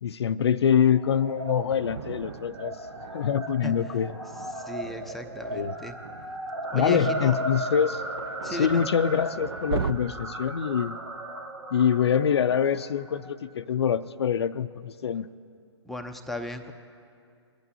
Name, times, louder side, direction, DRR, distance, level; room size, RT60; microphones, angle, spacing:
voice 1, 0.0-2.8 3.1-4.1 5.5-5.7 6.7-8.0 8.5-11.0 11.7-15.3, left 8 dB, 60° left, 12 dB, 0.4 m, -25 dB
sound 1, 0.9-13.3, right 1 dB, 80° right, 1.8 m, -36 dB
Thunder, 1.3-9.9, right 7 dB, 55° right, 0.7 m, -40 dB
voice 2, 3.6-4.0 4.5-5.9 6.7-7.4 8.4-8.8 15.9-16.7, right 1 dB, ahead, 5 dB, 0.6 m, -36 dB
22.5 x 11.0 x 2.8 m, 2.3 s
figure-of-eight pair, 130°, 15 cm